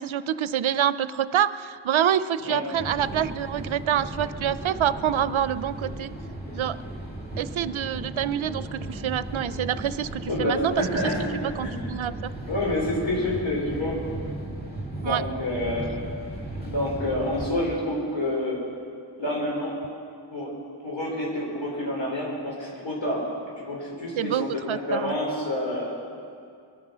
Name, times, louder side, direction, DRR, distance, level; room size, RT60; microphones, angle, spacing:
voice 1, 0.0-6.1 6.5-6.8 7.4-11.0 11.4-12.3 15.0-15.2 24.2-25.1, right 9 dB, 75° right, 15 dB, 0.6 m, -26 dB
sound 1, 2.7-17.5, right 1 dB, 20° left, 2.8 m, -36 dB
voice 2, 10.3-11.9 12.5-14.0 15.0-15.9 16.6-18.6 19.2-19.8 20.3-20.5 20.8-23.3 23.6-25.9, left 1 dB, 70° left, -4 dB, 5.1 m, -28 dB
22.5 x 9.5 x 6.1 m, 2.3 s
wide cardioid pair, 95°, 47 cm